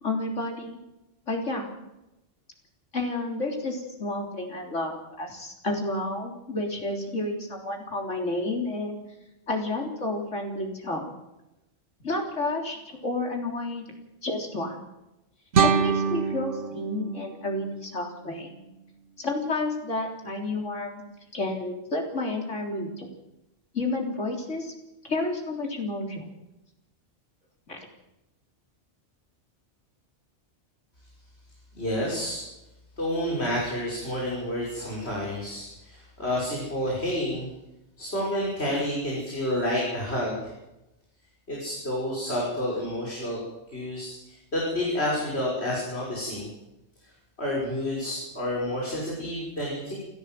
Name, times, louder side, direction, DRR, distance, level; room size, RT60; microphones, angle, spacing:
voice 1, 0.0-0.8 1.3-1.7 2.9-9.0 9.5-11.1 12.0-13.8 14.2-14.8 15.6-18.5 19.2-21.0 21.3-23.1 23.7-24.7 25.1-26.3 27.7-27.9, left 2 dB, 85° left, 1 dB, 4.0 m, -30 dB
sound 1, 15.5-18.6, right 6 dB, 75° right, 1.4 m, -26 dB
voice 2, 31.7-32.4 33.0-37.5 38.0-40.5 41.5-43.4 43.7-46.5 47.4-49.9, left 1 dB, 60° left, -4 dB, 6.3 m, -29 dB
28.5 x 14.0 x 7.7 m, 0.96 s
omnidirectional pair, 1.2 m